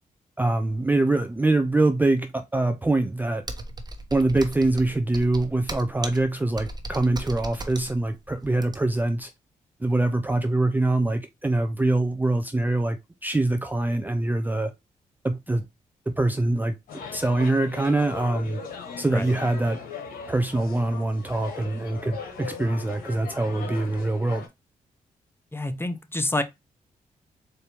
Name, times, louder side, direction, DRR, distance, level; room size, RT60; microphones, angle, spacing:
voice 1, 0.4-3.5 4.1-9.3 9.8-14.7 15.2-15.6 16.1-16.8 17.1-18.6 19.0-19.8 20.3-24.4, right 2 dB, 10° right, 0.5 m, -24 dB
Computer keyboard, 3.4-9.1, right 2 dB, 25° right, 1.0 m, -37 dB
sound 1, 16.9-24.5, left 6 dB, 85° left, 1.1 m, -39 dB
voice 2, 25.5-26.4, left 1 dB, 15° left, 0.8 m, -28 dB
4.4 x 2.6 x 3.4 m
supercardioid pair, 55°, 15 cm